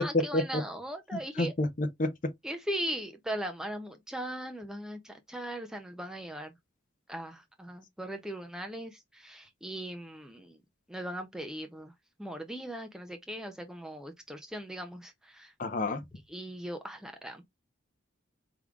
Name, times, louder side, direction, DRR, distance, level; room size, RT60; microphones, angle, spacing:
voice 1, 0.0-1.5 2.4-6.5 7.1-10.6 10.9-11.9 12.2-15.5 16.3-17.5, right 1 dB, 5° right, 0.4 m, -39 dB
voice 2, 1.1-2.1 15.6-16.0, left 1 dB, 40° left, 0.7 m, -30 dB
4.8 x 3.6 x 2.3 m
head